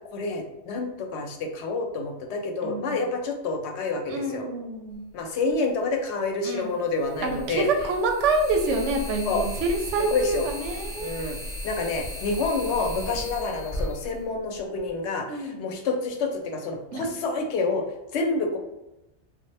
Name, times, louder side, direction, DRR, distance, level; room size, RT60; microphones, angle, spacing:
voice 1, 0.1-4.5 5.1-7.7 9.3-9.4 10.0-10.5 11.0-11.4 11.6-17.8 18.1-18.6, left 3 dB, 75° left, 3 dB, 0.8 m, -28 dB
voice 2, 2.6-3.0 4.1-5.0 6.4-6.7 7.2-11.2 13.1-13.3 15.3-15.7 16.9-17.1, right 3 dB, 85° right, 3 dB, 0.9 m, -27 dB
sound 1, 5.5-5.6 6.9-14.9, equal, 5° right, 0.4 m, -36 dB
3.4 x 2.1 x 3.2 m, 0.92 s
omnidirectional pair, 1.2 m